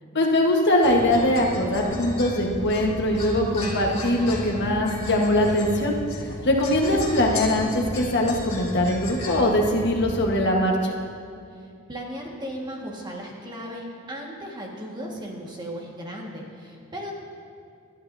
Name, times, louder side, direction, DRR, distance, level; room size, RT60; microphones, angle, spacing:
voice 1, 0.1-6.0 6.4-10.9, left 1 dB, 55° left, 0 dB, 1.3 m, -22 dB
sound 1, 0.8-10.4, left 1 dB, 30° left, 2.4 m, -34 dB
voice 2, 11.5-17.1, equal, 20° right, -1 dB, 1.7 m, -36 dB
21.0 x 12.0 x 2.7 m, 2.4 s
head